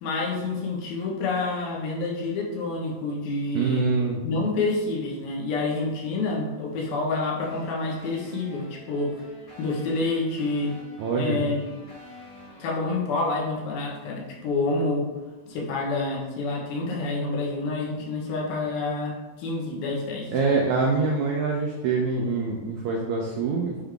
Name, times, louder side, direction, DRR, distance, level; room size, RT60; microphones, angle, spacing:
voice 1, 0.0-3.8 4.2-9.2 9.6-10.8 11.2-11.7 12.6-15.1 15.5-20.3, left 3 dB, 90° left, -2 dB, 3.1 m, -28 dB
voice 2, 3.5-4.2 11.0-11.4 20.3-23.8, right 4 dB, 85° right, 0 dB, 1.6 m, -25 dB
sound 1, 7.4-12.7, left 1 dB, 30° left, 2.1 m, -48 dB
8.9 x 3.5 x 3.8 m, 1.2 s
omnidirectional pair, 4.2 m